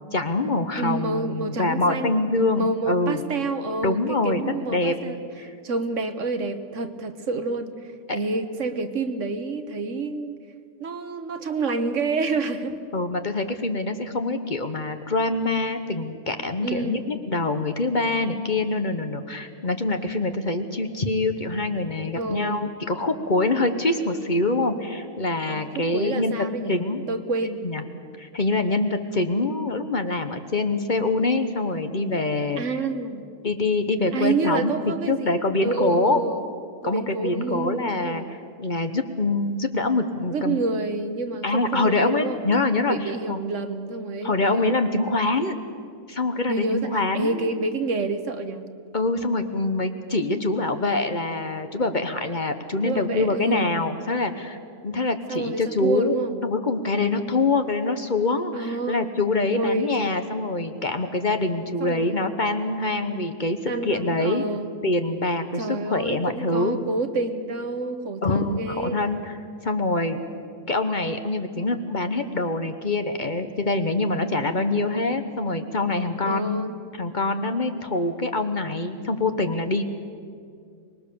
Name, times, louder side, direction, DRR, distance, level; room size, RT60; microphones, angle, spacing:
voice 1, 0.1-3.2 3.8-4.4 4.7-4.9 12.9-27.0 27.6-27.8 28.2-32.6 33.4-34.7 35.1-36.2 36.8-40.6 41.4-42.9 43.3-43.4 44.2-45.6 46.1-47.6 48.9-54.6 54.8-56.2 56.4-64.5 64.8-66.8 68.2-69.3 69.6-70.2 70.7-79.8, left 2 dB, 40° left, 8 dB, 1.2 m, -25 dB
voice 2, 0.8-2.3 2.6-10.3 10.8-12.8 16.6-17.0 22.1-22.6 24.6-24.9 25.5-26.8 27.1-27.6 32.6-33.3 34.1-36.4 36.8-38.3 40.3-42.4 42.9-44.7 46.5-48.7 52.8-53.7 55.3-56.4 58.5-59.1 59.5-60.0 61.8-62.3 63.7-64.7 65.6-69.0 76.2-76.7, right 3 dB, 70° right, 8 dB, 1.5 m, -28 dB
24.5 x 20.5 x 6.9 m, 2.2 s
omnidirectional pair, 1.3 m